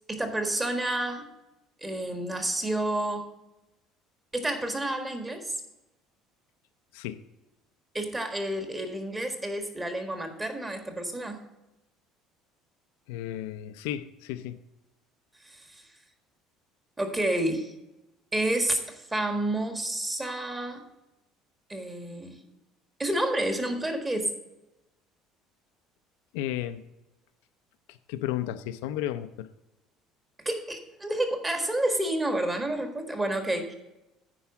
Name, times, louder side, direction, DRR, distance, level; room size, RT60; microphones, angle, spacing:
voice 1, 0.1-1.3 1.8-3.3 4.3-5.6 7.9-11.4 15.4-15.7 17.0-17.7 18.3-20.8 21.7-22.4 23.0-24.3 30.4-33.7, right 1 dB, 15° right, 1.6 m, -29 dB
voice 2, 6.9-7.2 13.1-14.6 26.3-26.8 27.9-29.5, left 12 dB, 85° left, 0.5 m, -33 dB
9.9 x 4.7 x 7.1 m
supercardioid pair, 100°, 0 cm